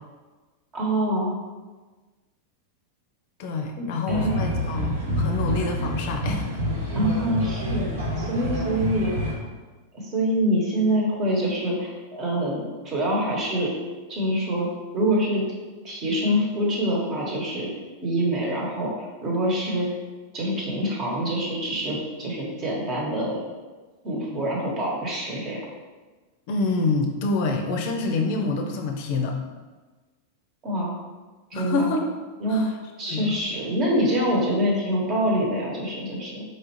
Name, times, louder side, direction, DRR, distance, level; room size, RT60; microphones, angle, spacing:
voice 1, 0.7-1.3 3.8-4.3 6.9-9.1 9.9-13.7 14.1-14.7 14.9-15.4 15.8-17.7 18.0-19.9 20.3-23.4 24.0-25.6 30.6-30.9 31.5-31.9 32.4-32.7 33.0-36.4, equal, 35° right, -3 dB, 1.2 m, -25 dB
voice 2, 3.4-6.5 24.3-24.4 26.5-29.4 31.5-32.1 32.5-32.7 33.1-33.3, left 3 dB, 60° left, 3 dB, 0.4 m, -27 dB
sound 1, 4.1-9.3, equal, 80° right, 1.0 m, -27 dB
4.2 x 2.4 x 3.0 m, 1.3 s
hypercardioid pair, 100°, 0 cm